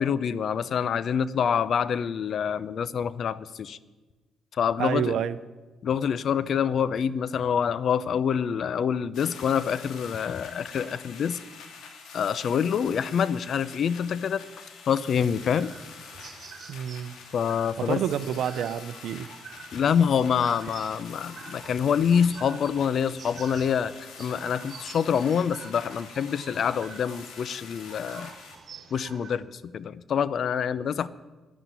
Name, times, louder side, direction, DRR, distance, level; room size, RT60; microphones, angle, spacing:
voice 1, 0.0-3.8 4.6-5.2 5.8-11.4 12.1-14.4 14.9-15.7 17.3-18.0 19.7-28.3 28.9-31.1, left 7 dB, 60° left, 18 dB, 0.6 m, -26 dB
voice 2, 4.8-5.4 16.7-17.2 17.8-19.3, right 9 dB, 75° right, 15 dB, 0.7 m, -28 dB
sound 1, 9.1-28.6, left 5 dB, 75° left, 2.5 m, -46 dB
sound 2, 15.3-29.3, right 5 dB, 50° right, 2.6 m, -47 dB
11.0 x 10.0 x 9.5 m, 1.2 s
cardioid pair, 90°, 0 cm